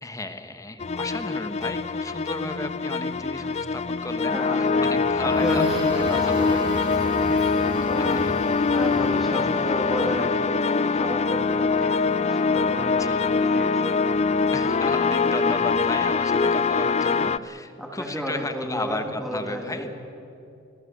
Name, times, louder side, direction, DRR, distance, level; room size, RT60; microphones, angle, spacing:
voice 1, 0.0-5.6 6.1-6.6 8.2-8.3 13.0-13.3 14.5-19.9, left 2 dB, 15° left, 8 dB, 1.3 m, -34 dB
sound 1, 0.8-17.4, left 4 dB, 30° left, 0.4 m, -23 dB
voice 2, 4.3-4.9 5.2-8.3 8.7-14.1 14.4-14.6 15.3-15.4 16.4-16.5 17.1-17.2 17.8-19.9, equal, ahead, -2 dB, 2.8 m, -33 dB
sound 2, 4.9-10.7, right 1 dB, 25° right, 5.1 m, -38 dB
25.5 x 16.5 x 7.9 m, 2.7 s
head